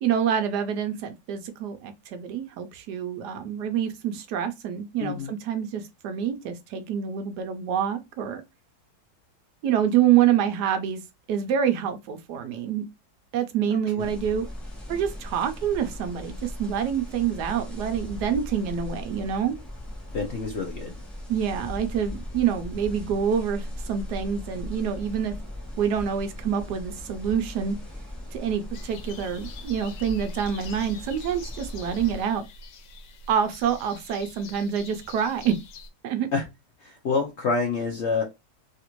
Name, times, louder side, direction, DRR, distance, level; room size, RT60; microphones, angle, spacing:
voice 1, 0.0-8.4 9.6-11.0 11.3-12.8 13.3-14.4 14.9-19.6 21.3-25.3 25.8-27.8 28.3-32.4 33.3-35.5 36.0-36.3, right 8 dB, 75° right, 1.1 m, -26 dB
voice 2, 5.0-5.3 13.7-14.1 20.1-20.9 36.3-36.4 36.8-38.2, left 4 dB, 60° left, 0.7 m, -27 dB
sound 1, 14.0-32.2, left 1 dB, ahead, 0.6 m, -38 dB
sound 2, 28.7-35.9, left 4 dB, 85° left, 1.3 m, -45 dB
3.2 x 2.5 x 2.9 m
omnidirectional pair, 1.9 m